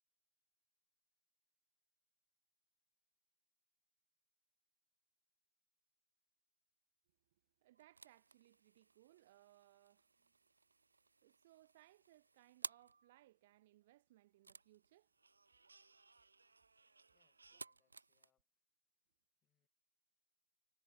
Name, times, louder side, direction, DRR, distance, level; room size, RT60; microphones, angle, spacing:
voice 1, 7.6-10.3 11.2-15.1 17.5-17.6, right 16 dB, 35° right, 1.0 m, -68 dB
sound 1, 7.7-13.2 14.4-18.3, right 4 dB, 75° right, 0.4 m, -56 dB
voice 2, 17.1-18.6 19.0-19.7, left 10 dB, 15° left, 6.8 m, -88 dB
figure-of-eight pair, 145°, 0 cm